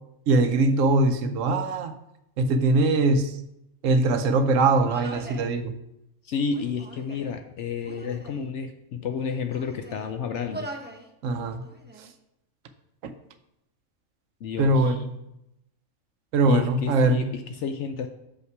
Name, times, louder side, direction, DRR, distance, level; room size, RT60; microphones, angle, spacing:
voice 1, 0.3-1.9 2.4-3.4 3.8-5.7 11.2-11.6 13.0-13.1 14.6-15.1 16.3-17.3, right 2 dB, 70° right, 9 dB, 1.0 m, -22 dB
Human voice, 4.7-5.5 6.4-7.4 7.8-8.5 9.1-10.1 10.5-11.1 11.4-12.1, right 2 dB, 10° right, 0.5 m, -42 dB
voice 2, 6.2-10.7 14.4-15.0 16.5-18.1, left 6 dB, 65° left, 7 dB, 0.8 m, -31 dB
6.6 x 5.6 x 4.6 m, 0.84 s
omnidirectional pair, 1.5 m